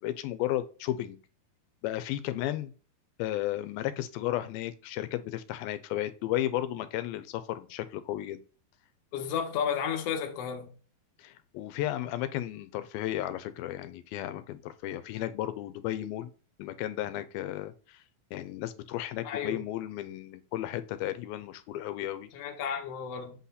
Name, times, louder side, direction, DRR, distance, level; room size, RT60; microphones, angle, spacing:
voice 1, 0.0-1.2 1.8-2.7 3.2-8.4 11.2-16.3 16.6-18.0 18.3-22.3, left 13 dB, 90° left, 2.5 m, -34 dB
voice 2, 9.1-10.7 19.2-19.6 22.3-23.3, left 7 dB, 65° left, 1.7 m, -32 dB
7.9 x 4.2 x 4.1 m
omnidirectional pair, 4.2 m